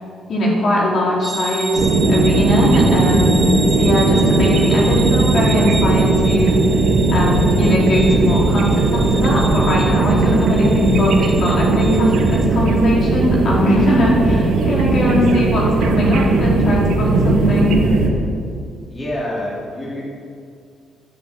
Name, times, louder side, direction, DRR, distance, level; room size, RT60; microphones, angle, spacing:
voice 1, 0.3-6.6 7.1-17.8, left 1 dB, 55° left, -4 dB, 4.5 m, -20 dB
sound 1, 1.2-12.5, right 2 dB, 15° right, 1.3 m, -30 dB
sound 2, 1.8-18.1, right 3 dB, 75° right, 2.0 m, -17 dB
voice 2, 18.9-20.0, left 1 dB, 20° left, -6 dB, 3.4 m, -27 dB
11.5 x 9.3 x 9.4 m, 2.3 s
cardioid pair, 105°, 0 cm